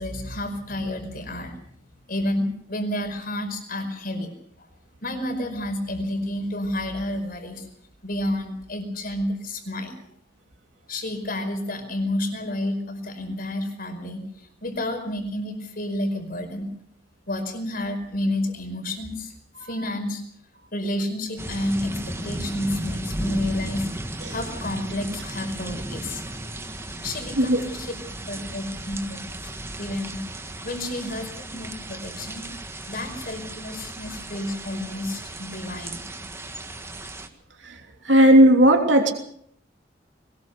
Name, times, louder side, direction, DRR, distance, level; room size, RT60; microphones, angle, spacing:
voice 1, 0.0-1.6 2.1-4.3 4.6-4.7 5.0-7.7 8.0-10.0 10.9-16.7 17.3-19.3 19.6-20.2 20.7-23.9 24.3-26.2 27.0-27.9 28.3-29.3 29.8-30.2 30.6-32.5 32.9-36.0, left 1 dB, 50° left, 6 dB, 4.9 m, -30 dB
sound 1, 21.4-37.3, right 1 dB, 15° right, 1.8 m, -35 dB
voice 2, 38.0-39.1, right 1 dB, 80° right, 3 dB, 3.0 m, -15 dB
22.5 x 20.0 x 6.7 m, 0.67 s
head